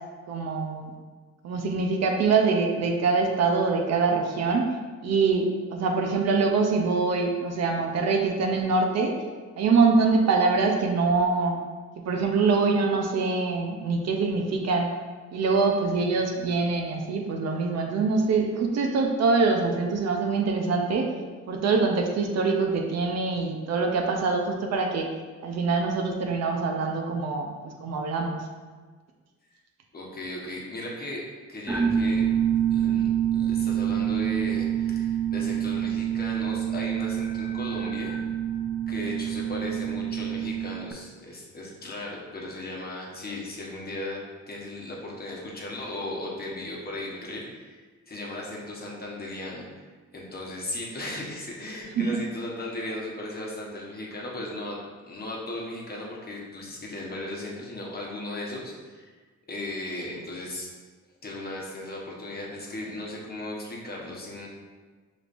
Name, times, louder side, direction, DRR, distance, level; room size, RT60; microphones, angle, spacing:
voice 1, 0.3-0.9 1.4-4.7 5.0-9.1 9.6-11.6 12.0-14.9 15.3-21.1 21.5-25.1 25.4-27.5 27.8-28.4 52.0-52.1, right 4 dB, 60° right, 2 dB, 0.6 m, -24 dB
voice 2, 29.9-31.2 31.5-32.2 32.7-38.2 38.9-44.2 44.5-47.8 48.1-49.7 50.1-54.8 55.0-59.1 59.5-60.7 61.2-64.5, left 1 dB, 30° left, -3 dB, 1.0 m, -36 dB
sound 1, 31.7-40.9, right 9 dB, 5° right, 0.5 m, -27 dB
5.0 x 3.2 x 2.5 m, 1.4 s
cardioid pair, 90°, 30 cm